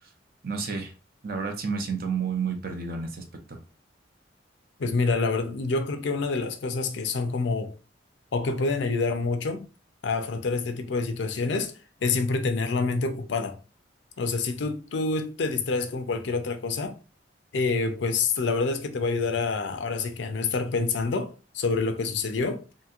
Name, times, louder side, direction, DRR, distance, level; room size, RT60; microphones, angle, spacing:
voice 1, 0.4-0.9 1.2-3.6, right 5 dB, 50° right, 0.6 m, -30 dB
voice 2, 4.8-7.8 8.3-9.7 10.0-13.6 14.2-17.0 17.5-22.6, left 4 dB, 70° left, 0.5 m, -27 dB
2.9 x 2.7 x 2.4 m
head